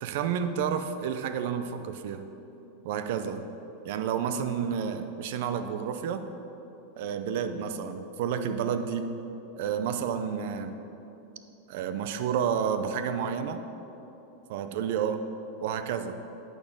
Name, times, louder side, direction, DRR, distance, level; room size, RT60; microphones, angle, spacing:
voice 1, 0.0-2.3 2.8-3.4 3.8-6.2 7.0-9.1 9.6-10.8 11.7-13.6 14.5-15.2 15.6-16.2, right 7 dB, 60° right, 9 dB, 0.5 m, -30 dB
9.0 x 4.4 x 6.5 m, 3.0 s
supercardioid pair, 160°, 0 cm